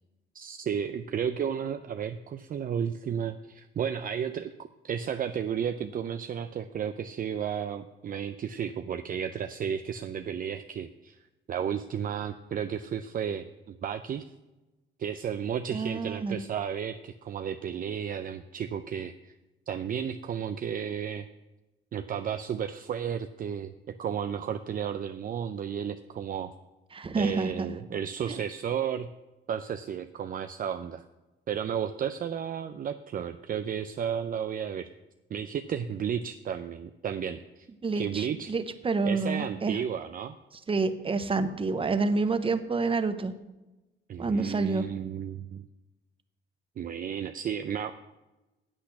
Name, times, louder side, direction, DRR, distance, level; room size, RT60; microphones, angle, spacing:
voice 1, 0.3-11.2 11.5-14.2 15.0-19.3 19.7-21.3 21.9-26.5 27.1-29.1 29.5-31.0 31.5-34.9 35.3-37.7 38.0-38.5 39.0-40.3 44.1-45.7 46.8-47.9, right 8 dB, 45° right, 9 dB, 0.5 m, -33 dB
voice 2, 15.7-16.4 26.9-27.7 37.8-39.8 40.7-43.3 44.2-44.9, right 3 dB, 25° right, 10 dB, 0.8 m, -28 dB
8.9 x 8.2 x 5.8 m, 1.1 s
cardioid pair, 90°, 20 cm